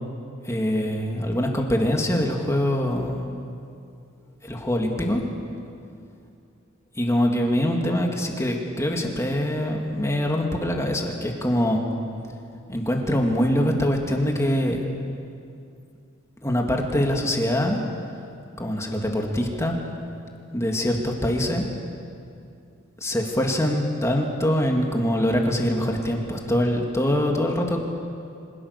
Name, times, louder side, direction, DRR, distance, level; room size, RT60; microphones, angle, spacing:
voice 1, 0.4-3.2 4.4-5.2 7.0-11.8 12.7-14.8 16.4-17.8 18.6-19.8 20.5-21.6 23.0-27.8, equal, 15° left, 1 dB, 2.9 m, -24 dB
28.0 x 26.0 x 7.0 m, 2.5 s
head